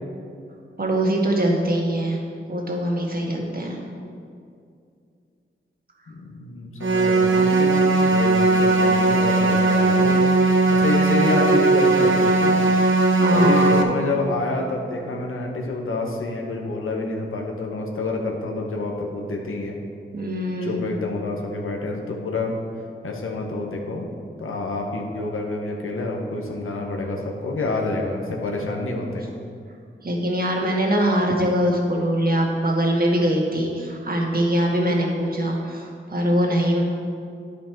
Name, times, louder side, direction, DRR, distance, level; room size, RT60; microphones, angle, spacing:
voice 1, 0.8-2.2 2.5-3.8 13.1-13.7 20.1-20.8 30.0-36.8, equal, 45° right, -1 dB, 1.6 m, -22 dB
voice 2, 6.1-10.3 10.8-12.7 13.3-19.8 20.6-22.5 23.0-24.1 24.4-29.3, left 2 dB, 85° left, 0 dB, 1.1 m, -28 dB
sound 1, 6.8-13.8, right 3 dB, 70° right, 0.8 m, -18 dB
10.5 x 5.1 x 4.5 m, 2.4 s
cardioid pair, 55°, 21 cm